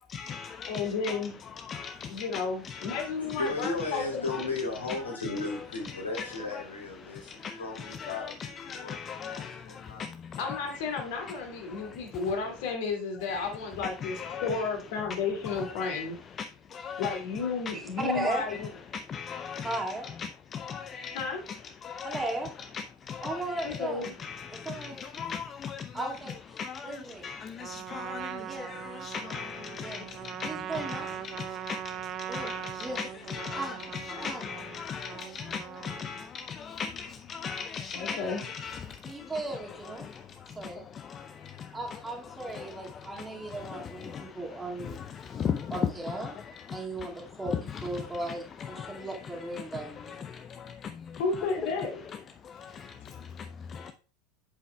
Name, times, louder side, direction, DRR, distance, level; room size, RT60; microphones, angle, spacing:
voice 1, 0.1-1.2 1.6-3.4 3.9-4.0 4.9-5.0 5.2-5.6 5.8-6.3 7.0-10.6 11.7-12.1 13.3-13.5 14.0-14.6 15.6-16.0 16.4-17.2 18.9-19.8 20.2-21.4 21.8-22.3 22.7-23.8 24.2-26.1 26.6-31.8 32.2-39.3 40.0-41.8 42.4-44.4 44.8-45.8 46.2-46.8 48.6-49.1 49.7-51.2 51.6-51.7 52.4-53.9, left 6 dB, 30° left, 0.5 m, -39 dB
voice 2, 0.6-1.3 2.1-4.3 10.4-16.2 17.0-18.7 21.1-21.4 23.6-24.1 28.2-28.3 37.9-38.4 51.1-52.0 53.0-53.2, left 5 dB, 55° left, 2.4 m, -32 dB
voice 3, 3.2-10.1, left 3 dB, 85° left, 3.0 m, -35 dB
voice 4, 17.7-18.6 19.6-20.1 22.0-22.5 23.2-24.1 24.5-25.0 25.9-27.3 28.4-28.7 29.8-30.1 30.4-31.1 32.3-32.5 32.8-33.0 33.5-33.8 34.2-34.5 39.0-40.1 40.6-40.9 41.7-45.0 45.7-46.4 46.7-50.3, right 2 dB, 15° right, 2.1 m, -36 dB
Trumpet, 27.6-36.3, right 11 dB, 40° right, 0.5 m, -40 dB
8.0 x 7.9 x 2.3 m
figure-of-eight pair, 80°, 0 cm